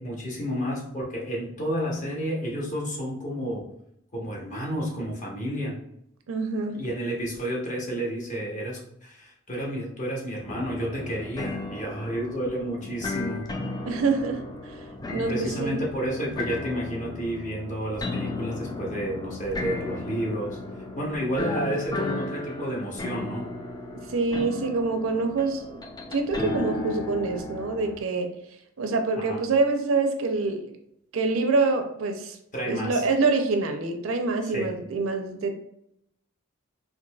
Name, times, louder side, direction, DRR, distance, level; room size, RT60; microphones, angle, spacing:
voice 1, 0.0-3.7 4.1-5.8 6.8-13.5 15.3-20.6 20.9-23.5 29.2-29.4 32.5-33.0 34.4-34.8, equal, 35° left, -2 dB, 0.8 m, -31 dB
voice 2, 6.3-6.8 13.9-14.9 15.1-15.8 24.1-25.8 26.1-28.3 28.8-30.8 31.1-32.4 32.6-35.5, right 3 dB, 75° right, 5 dB, 0.5 m, -26 dB
sound 1, 10.5-28.0, left 2 dB, 20° left, 0.3 m, -34 dB
3.9 x 2.6 x 2.2 m, 0.77 s
head